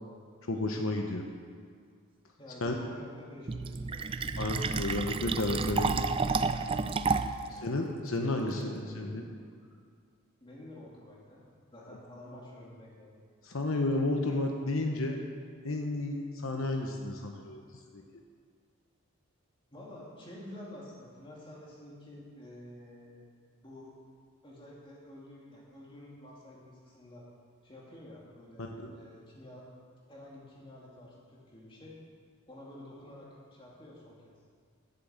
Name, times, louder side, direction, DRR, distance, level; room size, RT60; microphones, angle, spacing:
voice 1, 0.4-1.2 2.6-2.7 4.4-6.1 7.5-9.2 13.4-15.2 15.6-17.6 17.9-18.0 28.6-28.9, left 2 dB, 70° left, 2 dB, 1.0 m, -32 dB
voice 2, 2.4-5.2 7.4-7.8 8.4-9.2 10.4-11.4 11.7-13.2 19.7-23.2 23.6-23.9 24.4-27.3 27.6-29.7 30.1-31.9 32.5-34.3, left 1 dB, 25° left, -4 dB, 2.4 m, -49 dB
Fill (with liquid), 3.5-7.5, right 4 dB, 25° right, 0.3 m, -30 dB
11.0 x 7.5 x 8.1 m, 2.1 s
head